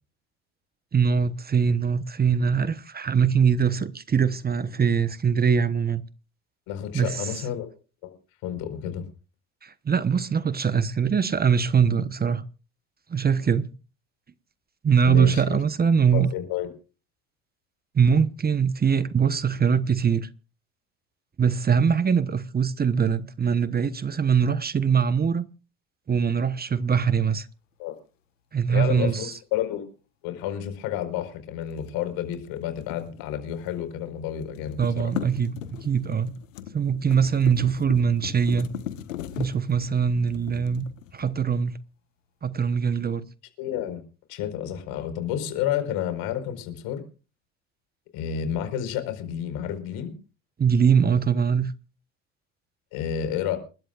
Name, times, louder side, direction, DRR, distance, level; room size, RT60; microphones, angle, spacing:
voice 1, 0.9-6.0 6.9-7.3 9.6-12.4 13.1-13.7 14.8-16.3 17.9-20.3 21.4-25.5 26.1-27.5 28.5-29.3 34.8-36.3 36.7-38.7 39.4-40.8 41.1-41.8 42.4-43.3 50.6-51.7, right 6 dB, 25° right, 1.1 m, -22 dB
voice 2, 6.7-7.7 8.0-8.1 8.4-9.1 15.0-15.6 16.1-16.7 27.8-27.9 28.7-29.8 30.2-35.1 43.6-44.0 44.3-47.0 48.1-50.1 52.9-53.6, left 10 dB, 70° left, 4.8 m, -30 dB
sound 1, 31.7-33.9 34.2-41.5, left 10 dB, 90° left, 1.3 m, -38 dB
28.5 x 13.0 x 2.5 m
hypercardioid pair, 75°, 37 cm